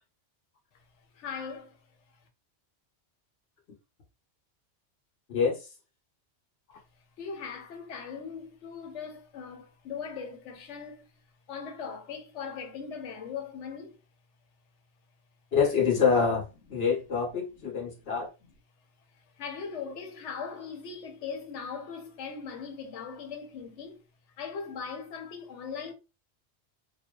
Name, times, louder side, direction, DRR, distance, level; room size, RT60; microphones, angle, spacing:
voice 1, 1.2-1.8 7.2-11.0 11.5-14.0 19.4-24.0 24.4-25.9, left 6 dB, 85° left, 1.0 m, -39 dB
voice 2, 5.3-5.7 15.5-16.4 16.7-18.3, left 6 dB, 65° left, 1.0 m, -26 dB
2.5 x 2.2 x 2.2 m
omnidirectional pair, 1.2 m